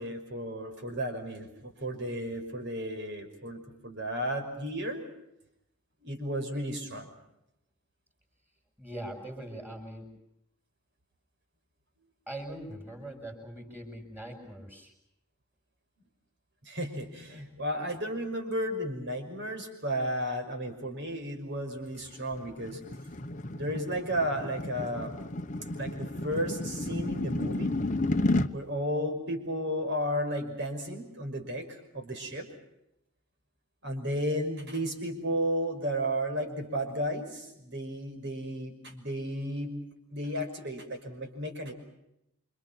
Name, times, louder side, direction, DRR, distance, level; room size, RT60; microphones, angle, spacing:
voice 1, 0.0-5.0 6.0-7.1 16.6-22.8 23.5-25.2 25.8-27.7 28.5-32.5 33.8-39.8 40.1-41.7, equal, 50° right, 5 dB, 5.7 m, -33 dB
voice 2, 8.8-10.1 12.3-14.9, right 1 dB, 10° right, 3 dB, 6.4 m, -41 dB
sound 1, 22.0-28.5, left 2 dB, 35° left, 1.0 m, -32 dB
29.0 x 26.0 x 6.0 m, 0.83 s
head